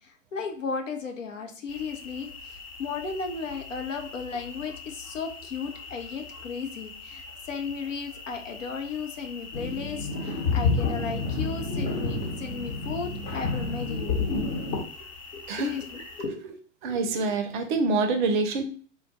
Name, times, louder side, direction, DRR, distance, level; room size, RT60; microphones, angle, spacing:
voice 1, 0.3-2.3 2.8-14.2 15.3-16.3, left 5 dB, 75° left, 4 dB, 0.7 m, -35 dB
sound 1, 1.7-16.3, left 4 dB, 25° left, 0.7 m, -44 dB
sound 2, 9.5-14.8, left 3 dB, 45° left, 0.9 m, -29 dB
voice 2, 16.8-18.6, right 3 dB, 40° right, 6 dB, 0.5 m, -26 dB
3.4 x 2.2 x 2.7 m, 0.43 s
figure-of-eight pair, 100°, 39 cm